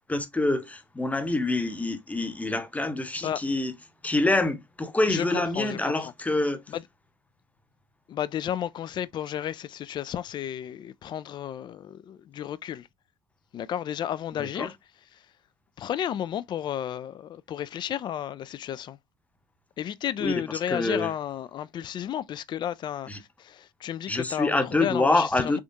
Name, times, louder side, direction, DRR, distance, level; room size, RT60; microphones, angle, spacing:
voice 1, 0.1-3.7 4.0-6.6 14.4-14.7 20.2-20.3 20.7-21.1 23.1-23.2 24.1-25.6, left 2 dB, 10° left, 0.8 m, -26 dB
voice 2, 5.1-5.9 6.7-6.8 8.1-12.9 13.5-14.8 15.1-15.2 15.8-19.0 19.8-25.6, left 10 dB, 40° left, 0.4 m, -32 dB
3.5 x 3.4 x 2.6 m
figure-of-eight pair, 55°, 12 cm